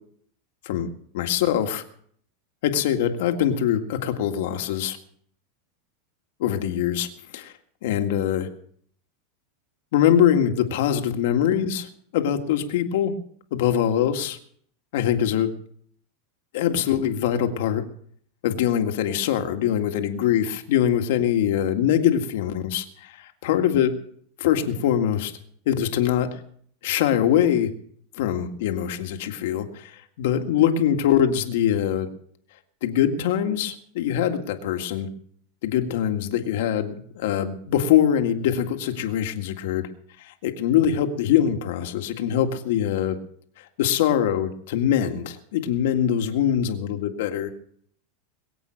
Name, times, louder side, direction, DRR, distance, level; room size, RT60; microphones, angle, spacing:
voice 1, 1.1-1.8 2.6-5.0 6.4-7.1 7.3-7.5 7.8-8.5 9.9-11.9 12.1-13.1 13.5-14.4 14.9-15.5 16.5-17.8 18.4-23.9 24.4-25.3 25.7-26.4 26.8-27.7 28.2-32.1 32.8-35.1 35.6-39.9 40.2-43.2 43.6-47.5, left 10 dB, 70° left, 6 dB, 1.9 m, -23 dB
22.0 x 8.1 x 6.4 m, 0.62 s
supercardioid pair, 140°, 0 cm